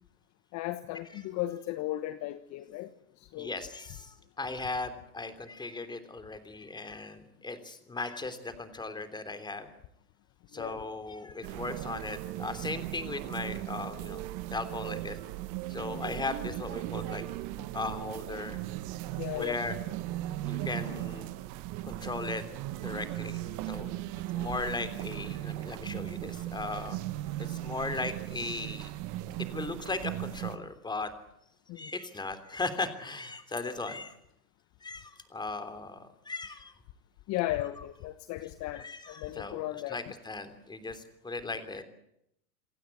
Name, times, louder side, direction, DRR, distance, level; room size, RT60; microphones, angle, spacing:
voice 1, 0.5-2.9 3.2-3.5 10.5-10.8 15.8-16.0 17.6-17.7 19.1-19.6 31.7-31.9 37.3-40.0, left 15 dB, 40° left, 1.2 m, -36 dB
voice 2, 3.3-9.7 10.5-14.2 14.5-15.2 15.7-17.2 17.7-18.6 19.3-19.7 20.5-21.3 21.8-22.4 22.8-24.0 24.3-27.0 27.6-28.9 29.5-31.1 31.8-34.1 34.8-36.0 36.2-36.7 38.7-39.6 39.9-41.8, left 3 dB, 10° left, 3.3 m, -37 dB
sound 1, 11.4-30.6, right 15 dB, 40° right, 1.5 m, -37 dB
28.0 x 16.0 x 9.5 m
hypercardioid pair, 115°, 44 cm